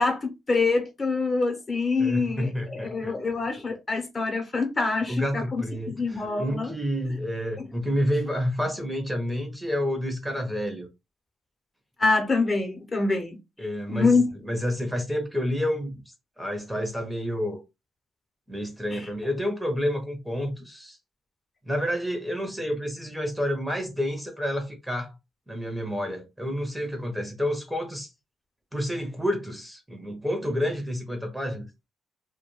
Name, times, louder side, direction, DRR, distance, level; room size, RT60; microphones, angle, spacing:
voice 1, 0.0-6.7 7.6-7.7 12.0-13.4 13.9-14.3 18.9-19.1, left 3 dB, 30° left, 0.8 m, -25 dB
voice 2, 2.0-3.2 5.1-10.9 13.6-14.1 14.4-16.0 16.4-17.6 18.5-21.0 21.7-25.1 25.5-28.1 28.7-31.7, equal, 5° right, 0.7 m, -29 dB
2.2 x 2.2 x 3.0 m
cardioid pair, 90°, 0 cm